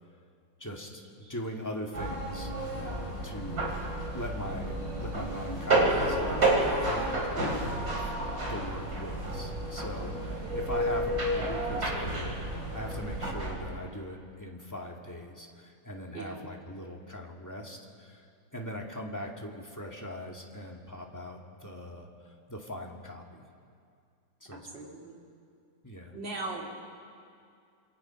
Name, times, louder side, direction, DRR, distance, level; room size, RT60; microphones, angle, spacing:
voice 1, 0.6-2.5 2.8-6.5 6.9-8.0 8.3-18.2 18.5-23.4 24.4-24.8 25.8-26.2, left 1 dB, 10° left, 0 dB, 2.1 m, -41 dB
sound 1, 1.9-13.5, right 1 dB, 55° right, 4.2 m, -30 dB
voice 2, 24.5-25.2 26.1-26.7, right 3 dB, 85° right, -1 dB, 3.6 m, -38 dB
27.0 x 22.5 x 5.9 m, 2.3 s
omnidirectional pair, 2.0 m